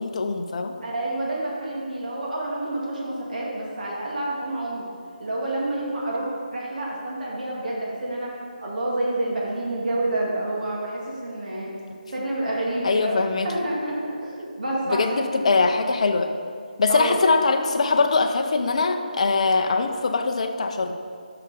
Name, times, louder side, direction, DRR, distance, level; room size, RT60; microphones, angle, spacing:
voice 1, 0.0-0.8 12.8-13.6 14.9-16.3 16.8-21.0, left 4 dB, 45° left, 5 dB, 0.6 m, -22 dB
voice 2, 0.8-4.9 5.2-8.3 8.6-11.7 12.1-13.2 13.4-15.5 16.9-17.2, right 1 dB, 60° right, -5 dB, 2.0 m, -28 dB
7.1 x 5.7 x 5.3 m, 2.2 s
figure-of-eight pair, 170°, 5 cm